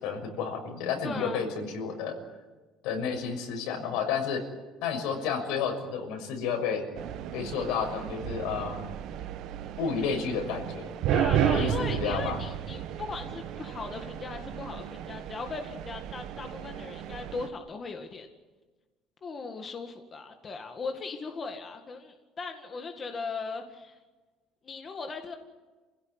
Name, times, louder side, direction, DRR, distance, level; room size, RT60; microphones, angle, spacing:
voice 1, 0.0-2.2 2.8-4.4 4.8-6.8 7.3-8.8 9.8-10.9 11.4-12.4, left 6 dB, 80° left, 4 dB, 6.3 m, -31 dB
voice 2, 1.0-1.4 11.1-18.3 19.2-24.0 24.6-25.4, left 4 dB, 25° left, 4 dB, 1.9 m, -38 dB
sound 1, 7.0-17.5, right 10 dB, 55° right, 1.4 m, -33 dB
29.0 x 16.0 x 9.9 m, 1.3 s
cardioid pair, 170°, 0 cm